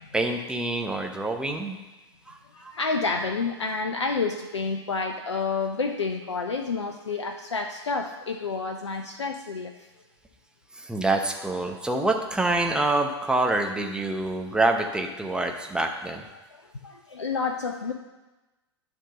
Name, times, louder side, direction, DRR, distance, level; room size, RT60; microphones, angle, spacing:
voice 1, 0.1-1.8 2.3-2.4 2.6-2.7 10.8-16.2, right 2 dB, 5° right, 3 dB, 0.7 m, -26 dB
voice 2, 2.5-9.7 16.6-17.9, left 4 dB, 80° left, 5 dB, 0.5 m, -29 dB
10.0 x 3.6 x 6.9 m, 1.1 s
figure-of-eight pair, 95°, 15 cm